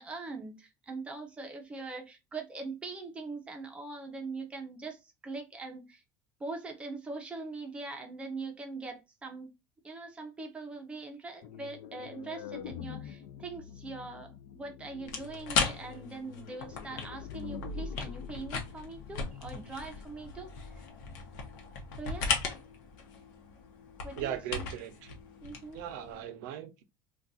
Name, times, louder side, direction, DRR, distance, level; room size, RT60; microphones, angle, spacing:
voice 1, 0.0-6.0 6.4-9.5 9.8-20.8 22.0-22.3 24.0-24.7 25.4-25.8, right 3 dB, 10° right, 0.5 m, -42 dB
sound 1, 11.4-20.2, left 6 dB, 55° left, 0.4 m, -45 dB
sound 2, 15.0-26.2, left 5 dB, 90° left, 0.8 m, -37 dB
voice 2, 24.2-25.2 25.7-26.8, right 11 dB, 80° right, 0.6 m, -38 dB
2.4 x 2.3 x 3.9 m
cardioid pair, 170°, 10 cm